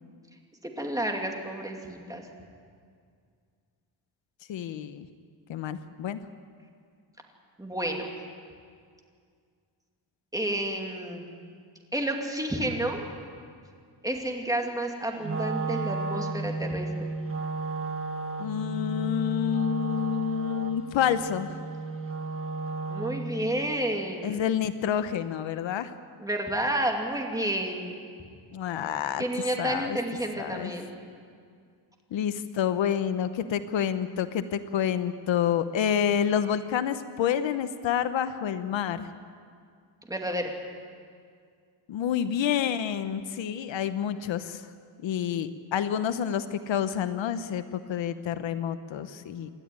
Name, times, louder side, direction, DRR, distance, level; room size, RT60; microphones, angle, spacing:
voice 1, 0.6-2.3 7.6-8.1 10.3-11.3 11.9-13.0 14.0-16.9 22.9-24.4 26.2-27.9 29.2-30.9 40.1-40.5, right 1 dB, 10° right, 2 dB, 2.7 m, -30 dB
voice 2, 4.5-5.1 5.5-6.2 18.4-21.5 24.2-25.9 28.5-29.2 29.6-30.0 30.4-30.7 32.1-39.1 41.9-44.6 45.0-49.5, left 9 dB, 75° left, 11 dB, 1.1 m, -28 dB
Wind instrument woodwind instrument, 15.2-23.4, right 3 dB, 30° right, 1.5 m, -33 dB
28.0 x 12.5 x 9.6 m, 2.2 s
cardioid pair, 130°, 46 cm